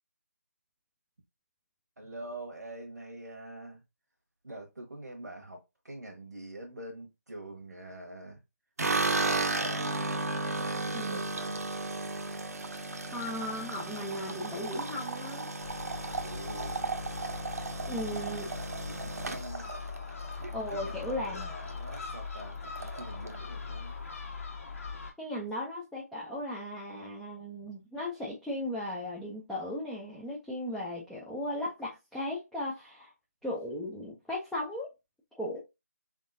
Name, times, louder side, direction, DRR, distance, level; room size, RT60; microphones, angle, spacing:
voice 1, 2.0-3.8 4.4-8.4 8.9-10.0 10.5-11.7 16.2-16.9 17.9-19.7 20.5-24.0 27.6-27.7, right 1 dB, 85° right, 1.2 m, -45 dB
sound 1, 8.8-21.0 21.4-22.0 22.2-22.3 22.6-23.4, right 3 dB, 65° right, 0.7 m, -34 dB
voice 2, 10.9-11.2 13.1-15.5 17.9-18.5 20.5-21.5 25.2-33.1 33.4-34.9 35.3-35.6, left 1 dB, ahead, 0.4 m, -36 dB
Gull seagull, 15.6-25.1, left 5 dB, 55° left, 1.4 m, -41 dB
3.7 x 3.7 x 2.6 m
figure-of-eight pair, 160°, 9 cm